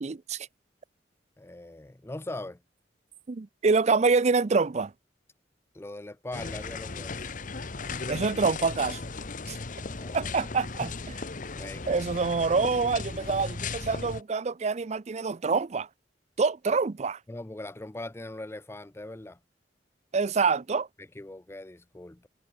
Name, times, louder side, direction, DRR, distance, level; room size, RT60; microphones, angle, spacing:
voice 1, 0.0-0.5 3.3-4.9 8.1-9.0 9.5-9.6 10.1-10.9 11.9-15.9 16.4-17.2 20.1-20.9, right 4 dB, 40° right, 0.5 m, -26 dB
voice 2, 1.4-2.6 5.7-7.3 9.7-10.3 10.8-10.9 11.6-12.0 17.3-19.4 21.2-22.3, left 1 dB, 15° left, 0.6 m, -41 dB
sound 1, 6.3-14.2, left 4 dB, 50° left, 1.1 m, -36 dB
head